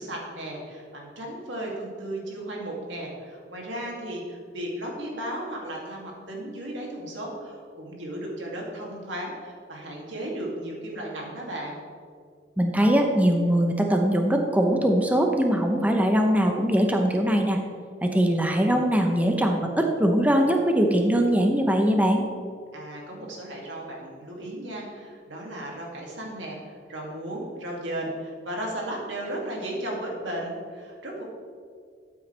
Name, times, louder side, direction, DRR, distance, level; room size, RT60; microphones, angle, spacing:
voice 1, 0.0-11.8 22.7-31.2, right 1 dB, 90° right, -2 dB, 2.6 m, -35 dB
voice 2, 12.6-17.6 18.0-22.2, equal, 10° right, 2 dB, 0.8 m, -21 dB
12.5 x 8.8 x 3.4 m, 2.2 s
head